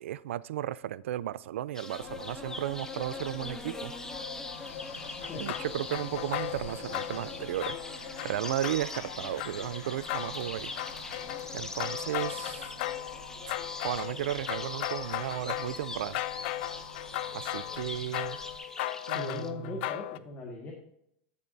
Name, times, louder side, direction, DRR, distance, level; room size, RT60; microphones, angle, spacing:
voice 1, 0.0-3.9 5.3-10.7 11.5-12.7 13.8-16.2 17.3-18.4 19.1-19.9, right 13 dB, 85° right, 0.4 m, -34 dB
sound 1, 1.7-19.5, left 2 dB, 10° left, 0.7 m, -43 dB
sound 2, 2.0-18.6, left 5 dB, 90° left, 1.6 m, -46 dB
sound 3, 5.2-7.3 7.6-9.8 10.1-20.2, left 15 dB, 60° left, 0.4 m, -37 dB
voice 2, 19.1-20.7, left 3 dB, 25° left, 1.7 m, -39 dB
12.5 x 7.1 x 2.7 m
supercardioid pair, 145°, 7 cm